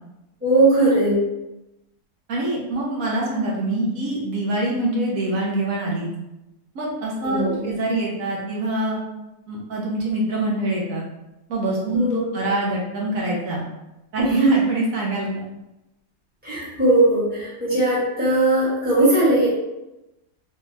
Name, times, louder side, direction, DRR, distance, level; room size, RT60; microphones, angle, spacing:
voice 1, 0.4-1.2 7.2-7.7 11.9-12.3 14.2-14.6 16.4-19.5, right 2 dB, 5° right, -9 dB, 1.1 m, -19 dB
voice 2, 2.3-6.1 6.7-9.0 9.5-11.0 11.5-13.6 14.1-15.4, right 1 dB, 70° right, -4 dB, 1.2 m, -25 dB
3.7 x 2.7 x 2.6 m, 0.95 s
omnidirectional pair, 1.5 m